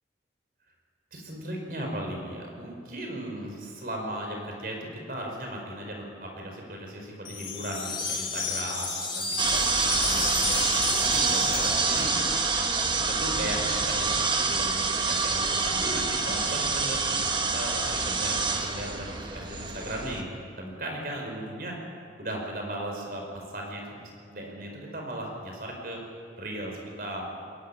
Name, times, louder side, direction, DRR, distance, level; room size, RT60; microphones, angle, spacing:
voice 1, 1.1-12.3 13.0-17.3 17.5-20.3 20.6-21.8 22.2-26.0 26.4-27.3, right 1 dB, 50° right, 1 dB, 5.1 m, -37 dB
sound 1, 7.3-12.6, left 4 dB, 25° left, 2.1 m, -33 dB
sound 2, 9.4-20.2, right 4 dB, 25° right, 1.4 m, -27 dB
22.0 x 13.0 x 9.9 m, 2.2 s
head